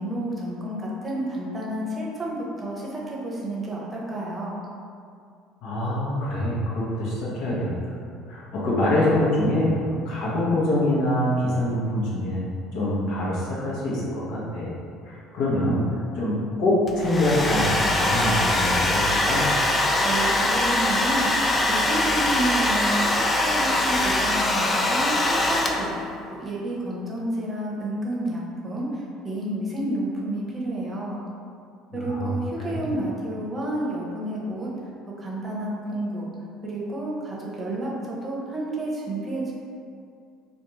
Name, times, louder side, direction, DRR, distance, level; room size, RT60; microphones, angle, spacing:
voice 1, 0.0-4.6 20.0-31.2 31.9-34.7 35.2-36.3 36.6-39.5, right 1 dB, 25° right, -5 dB, 0.7 m, -30 dB
voice 2, 5.6-7.9 8.3-12.4 12.7-14.7 15.0-15.8 16.2-19.5 31.9-32.3 32.6-32.7, left 1 dB, 70° left, -6 dB, 0.7 m, -25 dB
Domestic sounds home sounds, 16.9-26.1, left 1 dB, 30° left, 0.3 m, -22 dB
2.4 x 2.3 x 3.0 m, 2.3 s
hypercardioid pair, 70°, 0 cm